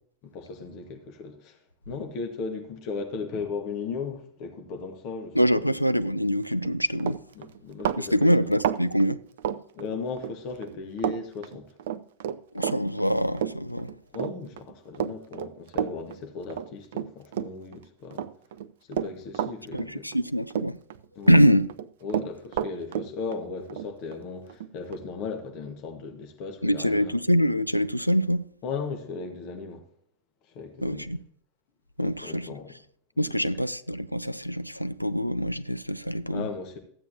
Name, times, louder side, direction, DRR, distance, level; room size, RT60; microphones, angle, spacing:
voice 1, 0.2-1.6 1.9-5.8 7.4-8.5 9.7-11.8 14.1-18.2 18.9-20.1 21.1-21.4 22.0-27.1 28.6-29.8 30.5-31.1 32.0-32.8 33.2-33.3 36.3-36.8, left 4 dB, 40° left, 1.5 m, -36 dB
voice 2, 5.3-7.2 8.0-9.2 12.5-13.9 19.7-20.8 21.3-21.7 26.6-28.4 30.8-31.2 32.0-32.5 33.2-36.5, equal, 90° left, 0.4 m, -24 dB
Run, 6.5-6.7 7.0-10.3 10.6-11.2 11.4-17.8 18.1-20.2 20.5-21.4 21.7-25.0, right 10 dB, 55° right, 0.4 m, -31 dB
13.5 x 8.3 x 2.8 m
figure-of-eight pair, 90°, 0 cm